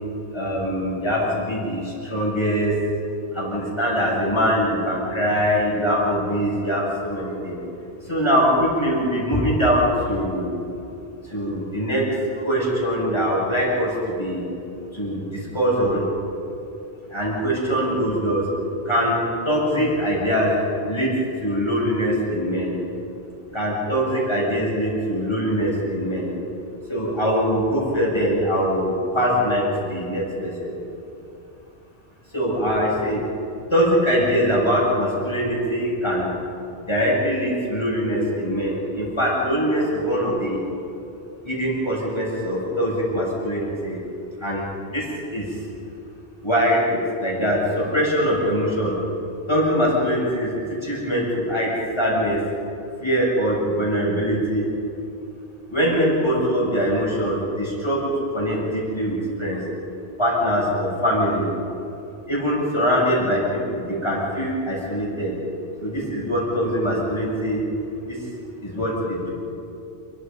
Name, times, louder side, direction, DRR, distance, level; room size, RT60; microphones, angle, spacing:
voice 1, 0.3-2.7 3.3-7.6 8.0-10.5 11.2-14.5 14.9-16.1 17.1-18.4 18.8-19.2 19.4-20.6 20.9-21.1 21.4-22.7 23.5-26.3 26.9-30.7 32.3-33.2 33.7-36.3 36.9-40.6 41.4-44.0 44.4-45.6 46.4-48.9 49.5-52.4 53.0-54.7 55.7-59.6 60.2-61.5 62.3-65.3 65.8-67.6 68.1-68.2 68.6-69.3, equal, 25° left, -5 dB, 8.2 m, -22 dB
29.5 x 24.5 x 5.6 m, 2.7 s
omnidirectional pair, 1.1 m